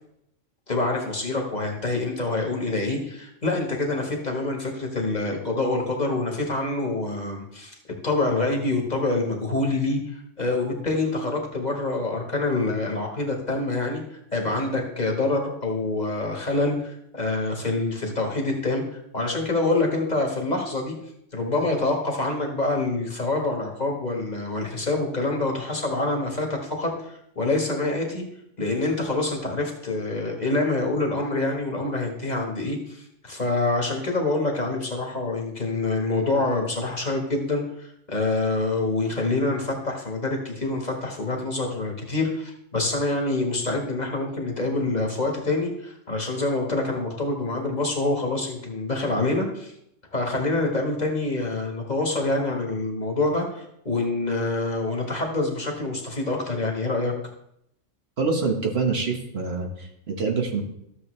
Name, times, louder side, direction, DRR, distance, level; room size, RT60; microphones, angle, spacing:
voice 1, 0.7-7.7 8.0-14.0 14.3-20.9 21.3-28.2 28.6-49.7 50.1-57.1, left 2 dB, 35° left, 0 dB, 1.5 m, -26 dB
voice 2, 58.2-60.6, right 4 dB, 55° right, 2 dB, 1.4 m, -26 dB
13.0 x 7.0 x 3.2 m, 0.77 s
omnidirectional pair, 1.3 m